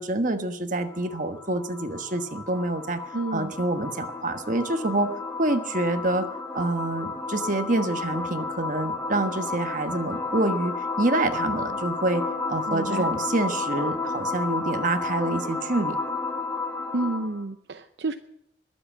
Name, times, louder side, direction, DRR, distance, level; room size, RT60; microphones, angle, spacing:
voice 1, 0.0-3.0 3.3-5.1 5.4-6.3 6.5-12.2 12.5-16.0, right 2 dB, 45° right, 8 dB, 1.3 m, -27 dB
sound 1, 0.8-17.4, left 3 dB, 10° left, 1.3 m, -32 dB
voice 2, 3.1-3.5 12.7-13.1 16.9-18.1, right 2 dB, 70° right, 8 dB, 0.7 m, -30 dB
21.5 x 7.9 x 7.4 m, 0.76 s
head